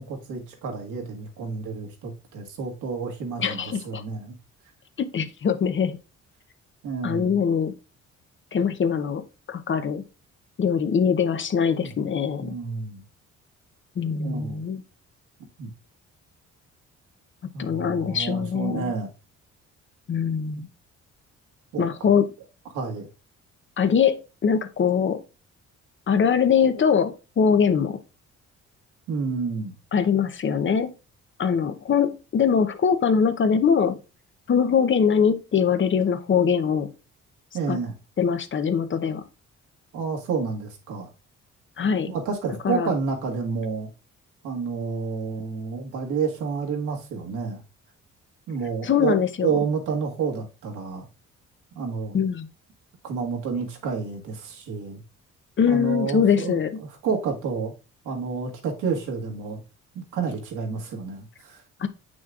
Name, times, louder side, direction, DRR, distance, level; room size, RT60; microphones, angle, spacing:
voice 1, 0.0-4.3 6.8-7.4 11.8-11.9 12.4-13.0 14.1-14.6 15.6-15.7 17.5-19.1 20.5-20.6 21.7-22.1 22.7-23.1 29.1-29.7 37.5-37.9 39.9-41.1 42.1-43.9 44.4-47.6 48.5-49.2 49.4-51.0 51.7-52.2 53.0-55.0 55.7-57.7 58.0-59.6 59.9-61.6, right 5 dB, 85° right, 1.8 m, -30 dB
voice 2, 3.4-4.0 5.0-6.0 7.0-7.7 8.5-10.0 10.6-12.6 14.0-14.8 17.6-18.9 20.1-20.7 21.8-22.3 23.8-25.2 26.1-28.0 29.9-30.9 31.4-34.0 34.5-36.9 37.7-37.8 38.2-39.2 41.8-42.1 42.6-42.9 48.8-49.6 52.1-52.5 55.6-56.8 61.8-61.9, left 7 dB, 40° left, 0.7 m, -22 dB
7.4 x 6.2 x 2.4 m
cardioid pair, 90°, 30 cm